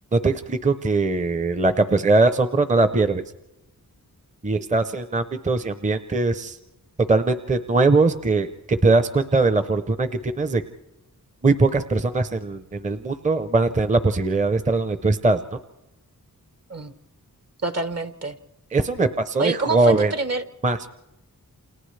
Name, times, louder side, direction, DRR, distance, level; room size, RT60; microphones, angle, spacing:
voice 1, 0.1-3.2 4.4-6.6 7.1-10.6 11.4-15.4 18.7-20.1 20.6-20.9, right 3 dB, 20° right, 10 dB, 0.6 m, -21 dB
voice 2, 17.6-18.4 19.4-20.4, right 2 dB, 45° right, 10 dB, 1.1 m, -26 dB
29.0 x 27.5 x 3.3 m, 0.91 s
wide cardioid pair, 120°, 35 cm